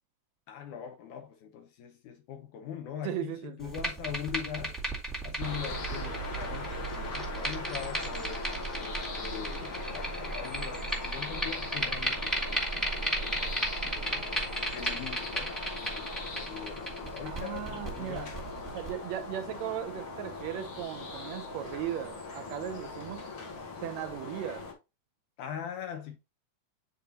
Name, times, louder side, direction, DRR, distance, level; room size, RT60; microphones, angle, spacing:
voice 1, 0.5-4.8 5.2-8.5 8.8-14.3 14.7-16.1 16.5-18.3 25.4-26.2, left 9 dB, 75° left, 2.4 m, -42 dB
voice 2, 3.0-3.7 17.3-18.3 18.7-23.3 23.8-24.6, right 11 dB, 80° right, 1.7 m, -37 dB
sound 1, 3.6-18.9, right 2 dB, ahead, 1.3 m, -35 dB
sound 2, 5.4-24.7, left 3 dB, 50° left, 1.9 m, -40 dB
8.6 x 4.2 x 2.8 m
omnidirectional pair, 3.5 m